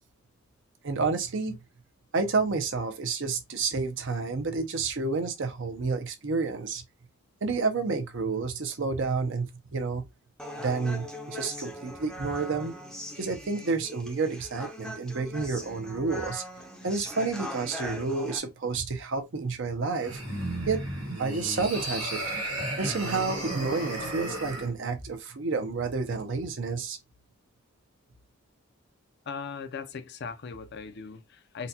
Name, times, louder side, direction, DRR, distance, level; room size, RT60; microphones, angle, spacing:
voice 1, 0.8-1.6 2.1-6.8 7.4-9.5 9.7-10.0 10.6-12.7 13.2-16.4 16.8-20.2 20.7-20.8 21.2-22.2 22.8-27.0, right 4 dB, 60° right, 0.6 m, -30 dB
Human voice, 10.4-18.4, equal, 5° left, 0.5 m, -40 dB
sound 1, 19.9-24.7, right 1 dB, 90° right, 1.3 m, -34 dB
voice 2, 29.3-31.7, left 5 dB, 50° left, 0.5 m, -39 dB
3.9 x 2.2 x 2.7 m
head